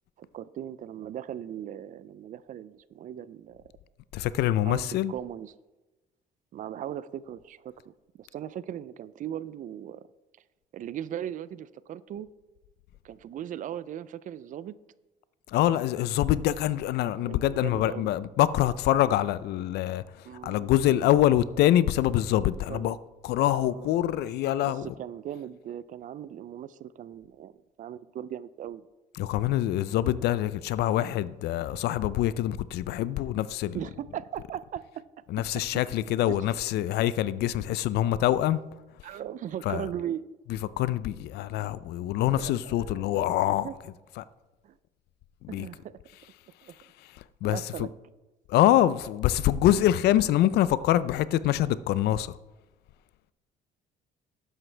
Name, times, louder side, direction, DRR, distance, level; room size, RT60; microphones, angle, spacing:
voice 1, 0.2-3.6 4.5-4.8 5.1-5.5 6.5-10.1 10.7-12.3 13.0-14.7 17.2-18.1 20.2-20.7 22.7-22.9 23.7-23.9 24.6-28.8 33.7-35.0 35.5-35.6 36.3-36.4 39.0-40.2 42.4-43.7 44.6-44.8 45.5-46.0 46.6-46.8 47.4-47.9, right 10 dB, 50° right, 0.4 m, -38 dB
voice 2, 4.1-5.1 15.5-23.0 23.2-24.9 29.1-33.8 35.3-38.6 39.6-39.9 40.8-43.7 44.2-44.3 45.4-45.7 47.1-47.9 48.5-52.4, left 13 dB, 75° left, 0.5 m, -25 dB
12.0 x 9.1 x 3.3 m
cardioid pair, 110°, 17 cm